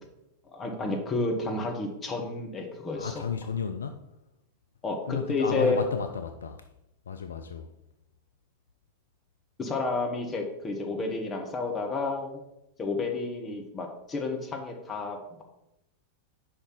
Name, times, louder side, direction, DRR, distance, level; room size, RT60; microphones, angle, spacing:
voice 1, 0.5-3.2 4.8-5.8 7.3-7.4 9.6-12.4 12.8-15.4, left 3 dB, 20° left, 1.3 m, -31 dB
voice 2, 2.9-4.1 5.1-6.6 7.1-7.7, left 6 dB, 70° left, 0.3 m, -32 dB
5.2 x 4.8 x 5.7 m
figure-of-eight pair, 90°, 0 cm